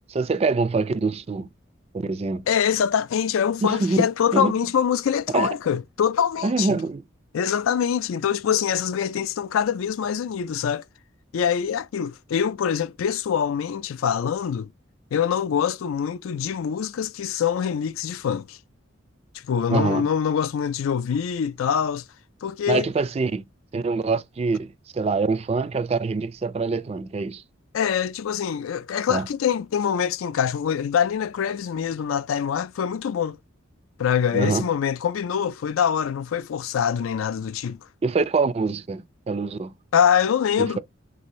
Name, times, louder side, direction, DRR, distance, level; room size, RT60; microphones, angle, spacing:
voice 1, 0.1-1.5 1.9-2.4 3.6-4.1 4.3-4.5 5.3-5.5 6.4-7.0 19.7-20.1 22.7-23.4 23.7-27.4 29.1-29.3 34.3-34.7 38.0-39.7 40.6-40.8, right 3 dB, 30° right, 0.3 m, -24 dB
voice 2, 2.5-6.8 7.3-10.8 11.3-14.7 15.1-18.6 19.4-22.0 22.4-22.9 27.7-33.4 34.0-37.8 39.9-40.8, left 8 dB, 80° left, 0.4 m, -24 dB
3.3 x 2.7 x 3.0 m
head